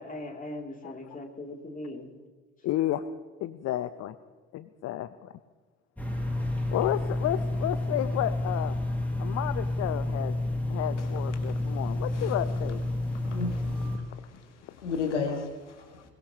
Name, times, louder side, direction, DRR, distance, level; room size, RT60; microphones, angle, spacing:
voice 1, 0.0-2.1, left 1 dB, 25° left, 2 dB, 3.1 m, -39 dB
voice 2, 2.6-3.0 3.4-4.2 4.5-5.3 6.7-8.8 9.2-10.4 10.7-12.8 15.3-15.4, left 13 dB, 45° left, 13 dB, 0.8 m, -31 dB
sound 1, 6.0-14.0, left 1 dB, 5° left, 6.2 m, -30 dB
voice 3, 11.4-11.7 12.1-12.3 13.1-14.2 14.5-16.0, left 4 dB, 80° left, 4 dB, 2.1 m, -35 dB
22.0 x 21.0 x 3.0 m, 1.4 s
figure-of-eight pair, 55°, 35 cm